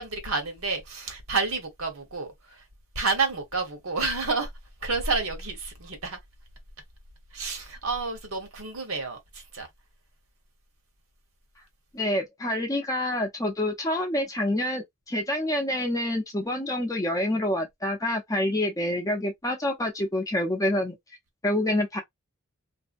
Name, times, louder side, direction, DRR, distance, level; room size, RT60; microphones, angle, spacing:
voice 1, 0.0-2.6 2.9-4.5 4.8-6.2 7.3-9.7, right 4 dB, 75° right, 1.1 m, -30 dB
voice 2, 11.9-20.9 21.4-22.0, left 1 dB, 15° left, 0.7 m, -27 dB
2.7 x 2.1 x 2.5 m
head